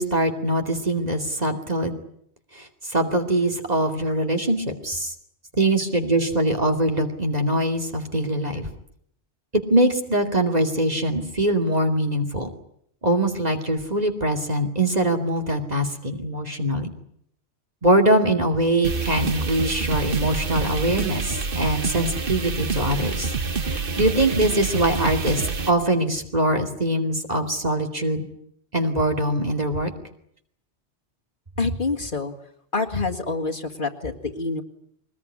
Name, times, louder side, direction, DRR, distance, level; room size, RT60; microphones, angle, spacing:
voice 1, 0.0-2.0 2.6-5.1 5.6-8.7 9.7-12.5 13.0-16.9 17.8-23.3 23.6-28.3 28.7-29.9, right 1 dB, 35° right, 3 dB, 2.7 m, -23 dB
sound 1, 18.8-25.7, right 4 dB, 50° right, 1.4 m, -27 dB
voice 2, 31.6-32.3 32.7-34.6, left 3 dB, 45° left, 3 dB, 2.1 m, -26 dB
22.5 x 20.0 x 9.8 m, 0.70 s
omnidirectional pair, 1.2 m